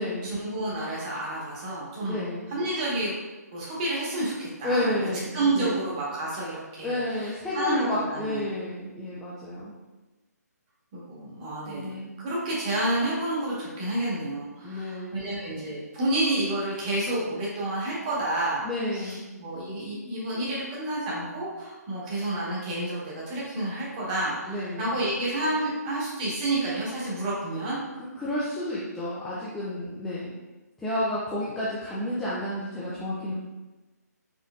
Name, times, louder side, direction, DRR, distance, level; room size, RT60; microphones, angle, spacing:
voice 1, 0.2-3.1 3.5-4.9 5.3-8.4 10.9-18.6 18.9-27.8, right 1 dB, 25° right, -6 dB, 1.3 m, -30 dB
voice 2, 2.0-2.5 4.6-5.8 6.8-9.7 11.7-12.1 14.6-15.2 18.6-19.2 24.5-24.9 28.2-30.3 30.8-33.3, left 1 dB, 5° left, -10 dB, 0.3 m, -31 dB
4.4 x 3.8 x 2.4 m, 1.1 s
hypercardioid pair, 155°, 9 cm